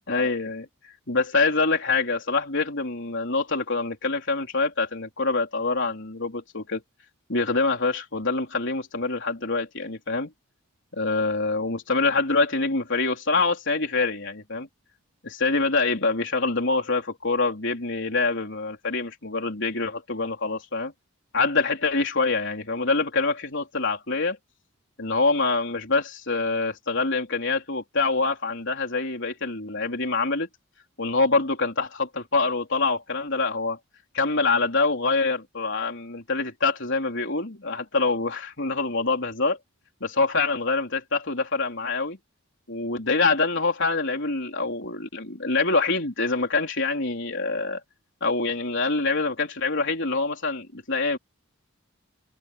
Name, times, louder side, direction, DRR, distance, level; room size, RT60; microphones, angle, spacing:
voice 1, 0.1-6.8 7.3-10.3 10.9-14.7 15.2-20.9 21.3-24.4 25.0-30.5 31.0-33.8 34.1-39.6 40.0-42.2 42.7-47.8 48.2-51.2, left 3 dB, 60° left, 4.1 m, -25 dB
head